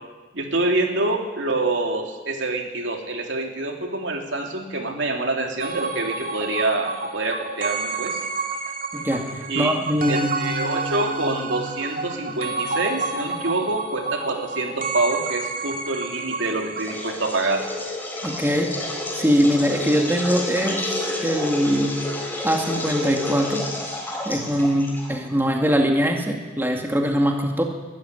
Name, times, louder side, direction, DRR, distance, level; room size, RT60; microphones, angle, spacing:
voice 1, 0.3-8.2 9.5-9.7 10.1-17.6, right 2 dB, 70° right, 2 dB, 3.0 m, -26 dB
sound 1, 5.6-17.1, right 3 dB, 50° right, 2.2 m, -30 dB
voice 2, 8.9-10.3 18.2-18.7 19.1-22.0 22.4-23.7 24.3-27.6, equal, 10° right, 2 dB, 2.1 m, -22 dB
sound 2, 16.8-25.3, left 2 dB, 10° left, 4.0 m, -29 dB
22.0 x 13.5 x 9.8 m, 1.3 s
head